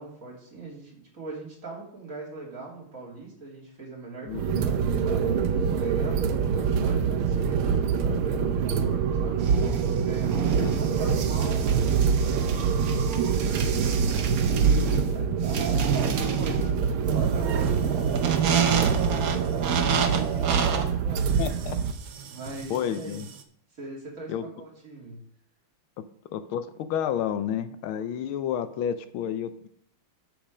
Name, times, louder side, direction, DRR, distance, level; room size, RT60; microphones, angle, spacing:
voice 1, 0.0-9.4 10.0-12.3 13.0-21.4 22.3-23.2 23.8-25.2, right 3 dB, 40° right, -4 dB, 3.1 m, -40 dB
voice 2, 4.3-4.6 10.6-10.9 21.4-21.8 22.7-23.3 24.3-24.5 26.3-29.7, left 9 dB, 80° left, 11 dB, 1.5 m, -30 dB
sound 1, 4.3-21.9, right 6 dB, 85° right, 1.6 m, -25 dB
sound 2, 9.4-23.4, right 6 dB, 55° right, 1.1 m, -29 dB
8.1 x 6.5 x 5.0 m, 0.67 s
omnidirectional pair, 2.3 m